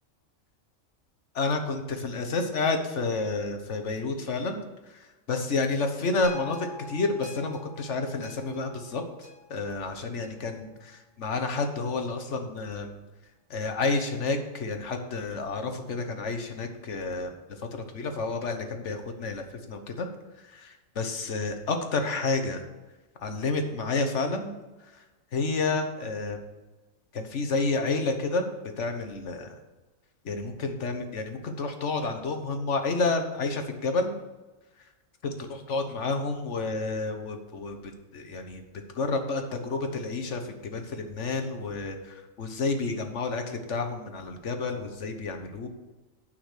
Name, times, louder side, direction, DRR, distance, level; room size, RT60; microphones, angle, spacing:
voice 1, 1.3-13.0 13.5-17.3 17.6-20.1 20.4-22.6 23.2-24.5 24.8-25.0 25.3-26.4 27.1-29.5 30.2-34.2 35.2-38.6 38.9-45.7, left 3 dB, 60° left, 6 dB, 1.4 m, -30 dB
sound 1, 6.2-10.6 11.2-11.3, left 2 dB, 80° right, 2.4 m, -46 dB
9.1 x 5.8 x 6.6 m, 1.1 s
omnidirectional pair, 1.4 m